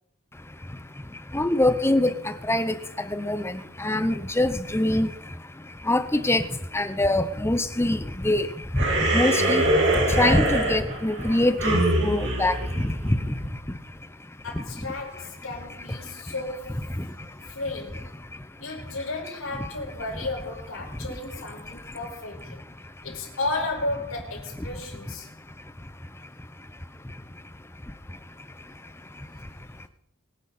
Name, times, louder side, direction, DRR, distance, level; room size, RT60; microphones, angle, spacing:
voice 1, 0.3-14.9 15.9-16.3 16.9-17.5 17.9-18.9 20.9-21.1 21.6-22.0 22.6-23.1 25.2-29.9, left 1 dB, 10° left, 0.7 m, -27 dB
sound 1, 8.8-13.5, right 1 dB, 60° right, 3.4 m, -24 dB
voice 2, 14.4-17.0 17.5-18.1 18.6-22.6 23.0-25.3, left 2 dB, 85° left, 5.3 m, -33 dB
23.5 x 10.5 x 4.2 m
head